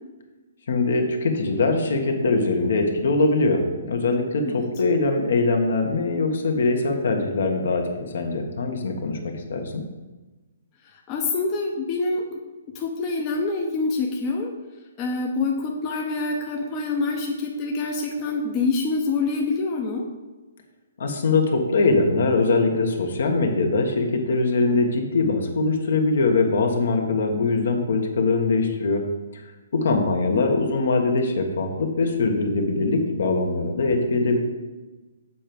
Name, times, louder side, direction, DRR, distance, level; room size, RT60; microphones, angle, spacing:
voice 1, 0.7-9.8 21.0-29.0 29.7-34.4, left 3 dB, 65° left, 4 dB, 1.6 m, -22 dB
voice 2, 11.1-12.4 12.7-14.5 15.0-20.1 30.3-30.6, left 3 dB, 20° left, 0 dB, 0.8 m, -26 dB
7.3 x 4.6 x 7.0 m, 1.2 s
hypercardioid pair, 165°, 0 cm